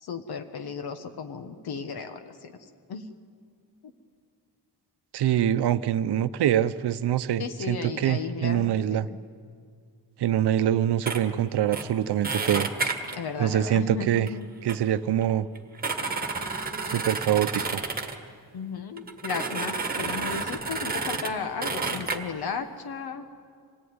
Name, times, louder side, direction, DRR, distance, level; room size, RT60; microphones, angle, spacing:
voice 1, 0.0-2.5 2.9-3.1 7.4-9.0 13.1-14.5 18.5-23.2, left 5 dB, 70° left, 7 dB, 1.3 m, -34 dB
voice 2, 5.1-9.1 10.2-12.7 13.4-14.3 14.6-15.5 16.9-17.8, right 10 dB, 75° right, 13 dB, 0.8 m, -24 dB
sound 1, 11.1-11.2 11.7-11.9 12.2-13.2 14.2-14.3 14.7-14.8 15.2-15.3 15.6-18.2 19.0-21.3 21.6-22.2, right 4 dB, 20° right, 1.5 m, -30 dB
26.0 x 18.0 x 9.6 m, 2.2 s
wide cardioid pair, 180°, 40 cm